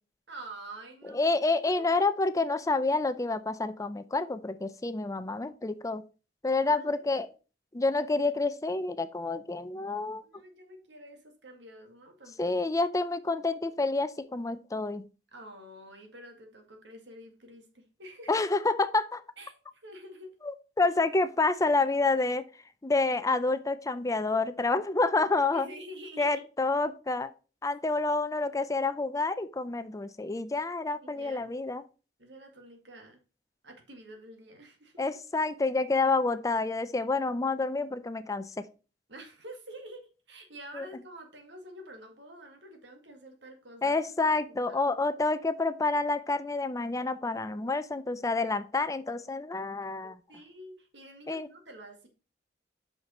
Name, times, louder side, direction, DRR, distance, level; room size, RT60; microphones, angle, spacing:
voice 1, 0.3-1.4 1.6-1.9 6.6-6.9 10.2-12.5 15.3-18.3 19.4-20.4 25.5-26.4 31.0-31.5 32.2-33.2 33.6-35.1 39.1-44.0 44.3-45.0 50.0-52.1, right 1 dB, 85° right, 4 dB, 2.0 m, -48 dB
voice 2, 1.1-6.0 6.4-7.3 7.7-10.2 12.4-15.0 18.3-19.1 20.4-22.5 22.8-25.7 26.2-27.3 27.6-31.8 35.0-38.7 40.7-40.9 43.8-50.2 51.3-51.5, left 3 dB, 20° left, 13 dB, 0.5 m, -28 dB
5.9 x 5.6 x 5.4 m, 0.34 s
head